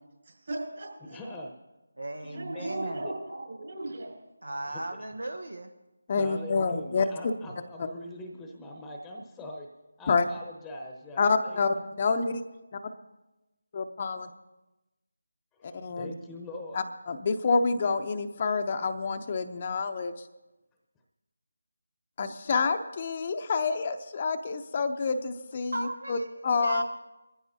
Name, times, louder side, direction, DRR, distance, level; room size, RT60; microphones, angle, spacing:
voice 1, 0.3-1.2 2.3-4.1, right 2 dB, 50° right, 0 dB, 5.7 m, -37 dB
voice 2, 1.0-1.5 2.2-3.1 4.6-4.8 6.1-9.7 10.0-11.6 15.5-16.9, left 1 dB, 10° left, 1 dB, 1.0 m, -42 dB
voice 3, 2.0-3.1 4.4-5.7 25.7-26.8, right 2 dB, 80° right, 7 dB, 1.1 m, -36 dB
voice 4, 6.1-7.1 10.1-10.2 11.2-12.4 12.7-12.8 13.7-14.3 15.7-16.1 16.7-20.1 22.2-26.2 26.4-26.8, left 4 dB, 35° left, 7 dB, 0.7 m, -28 dB
21.5 x 15.0 x 2.8 m, 1.0 s
figure-of-eight pair, 160°, 0 cm